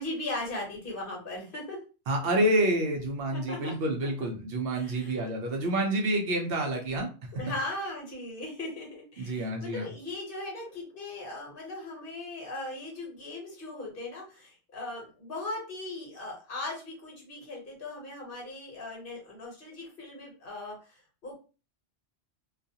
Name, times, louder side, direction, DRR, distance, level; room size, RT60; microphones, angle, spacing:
voice 1, 0.0-1.8 3.3-3.7 4.7-5.2 7.3-21.3, left 2 dB, 55° left, -1 dB, 1.1 m, -38 dB
voice 2, 2.1-7.1 9.2-9.9, right 1 dB, 65° right, 2 dB, 0.8 m, -28 dB
2.4 x 2.3 x 2.7 m, 0.34 s
omnidirectional pair, 1.1 m